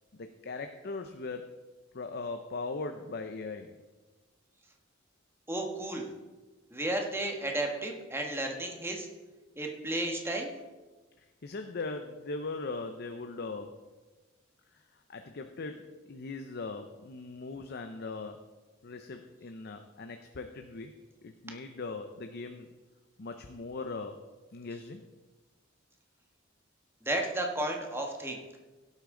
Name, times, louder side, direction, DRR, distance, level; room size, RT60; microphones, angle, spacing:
voice 1, 0.2-1.6 1.9-3.8 11.2-13.8 14.7-18.5 18.8-20.9 21.2-22.7 23.2-24.2 24.5-25.0, left 3 dB, 55° left, 6 dB, 0.7 m, -40 dB
voice 2, 5.5-6.1 6.7-9.1 9.6-10.5 27.0-28.4, right 1 dB, 15° right, 2 dB, 1.4 m, -33 dB
16.5 x 8.4 x 3.8 m, 1.2 s
head